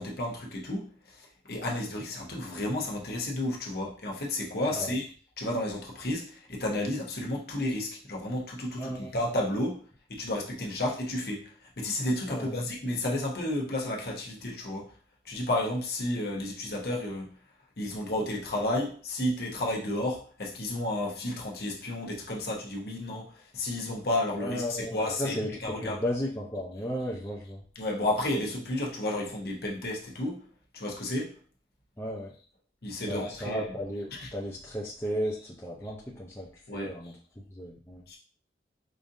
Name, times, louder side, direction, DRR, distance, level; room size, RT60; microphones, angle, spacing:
voice 1, 0.0-5.0 5.4-9.8 10.1-14.9 15.2-17.3 17.8-26.0 27.8-30.5 30.7-31.4 32.8-33.6 34.2-34.3 36.7-36.9 38.1-38.2, left 1 dB, 60° left, 0.9 m, -32 dB
voice 2, 8.8-9.1 12.3-12.5 24.4-25.5 25.8-27.6 32.0-32.3 33.1-37.2 37.5-38.0, equal, 15° left, 0.6 m, -34 dB
5.0 x 2.6 x 2.6 m
head